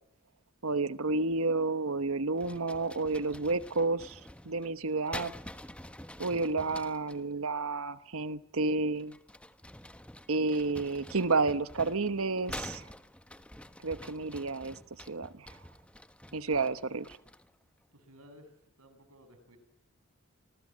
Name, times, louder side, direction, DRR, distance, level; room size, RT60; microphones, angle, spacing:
voice 1, 0.6-4.2 4.4-5.3 6.2-9.2 10.3-12.9 13.8-15.6 16.3-17.2, right 3 dB, 75° right, 12 dB, 1.1 m, -31 dB
sound 1, 2.4-7.2 9.0-17.5, left 1 dB, 5° left, 1.2 m, -47 dB
voice 2, 17.9-19.6, equal, 90° right, 9 dB, 7.4 m, -57 dB
30.0 x 26.5 x 7.5 m, 0.75 s
head